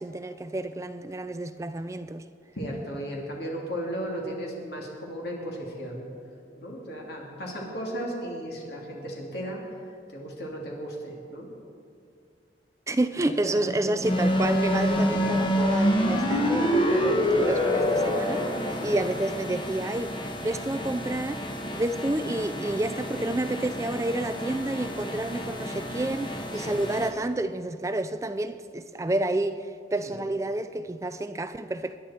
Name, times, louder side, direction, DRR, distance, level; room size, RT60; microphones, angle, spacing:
voice 1, 0.0-2.2 12.9-20.2 20.4-21.5 21.7-32.0, right 1 dB, 15° right, 0.4 m, -29 dB
voice 2, 2.6-6.0 6.5-9.7 10.1-11.5 13.2-14.0 15.1-15.3 18.7-19.0 26.5-26.9 30.0-30.3, equal, 60° left, 2.6 m, -36 dB
sound 1, 14.0-27.1, equal, 25° left, 1.3 m, -27 dB
25.5 x 11.0 x 4.3 m
head